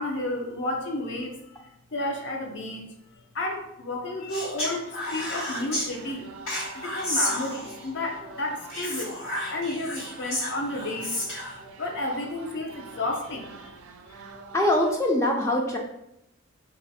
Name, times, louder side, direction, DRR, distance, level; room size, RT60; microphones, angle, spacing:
voice 1, 0.0-2.9 3.3-6.3 6.7-11.2 11.8-13.7, left 2 dB, 55° left, 2 dB, 0.6 m, -32 dB
Speech, 4.3-5.9 6.5-7.9 8.7-11.6, left 1 dB, 80° left, 1.5 m, -31 dB
sound 1, 5.0-14.9, right 4 dB, 90° right, 0.4 m, -46 dB
voice 2, 14.1-15.8, left 1 dB, 15° left, 0 dB, 0.3 m, -24 dB
3.1 x 2.5 x 4.1 m, 0.81 s
head